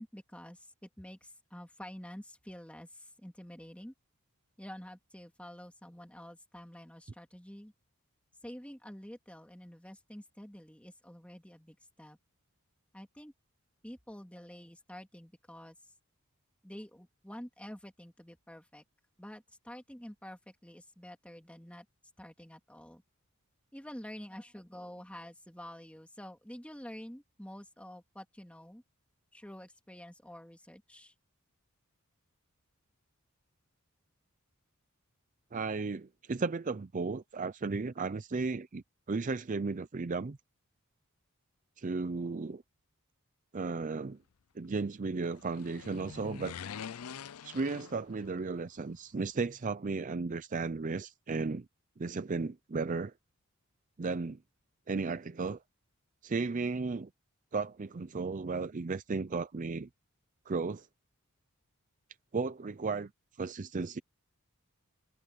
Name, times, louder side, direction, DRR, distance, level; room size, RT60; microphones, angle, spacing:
voice 1, 0.0-3.9 4.6-7.7 8.4-12.2 12.9-13.3 13.8-15.7 16.6-18.8 19.2-21.8 22.2-23.0 23.7-28.8 29.3-31.1, equal, 5° left, 2.9 m, -48 dB
voice 2, 35.5-40.4 41.8-42.6 43.5-44.2 44.6-46.6 47.4-51.7 52.0-53.1 54.0-54.4 54.9-55.6 56.2-57.1 57.5-59.9 60.5-60.9 62.3-63.1 63.4-64.0, right 4 dB, 35° right, 0.5 m, -34 dB
sound 1, 45.1-48.6 48.8-48.9, left 7 dB, 85° left, 0.5 m, -45 dB
head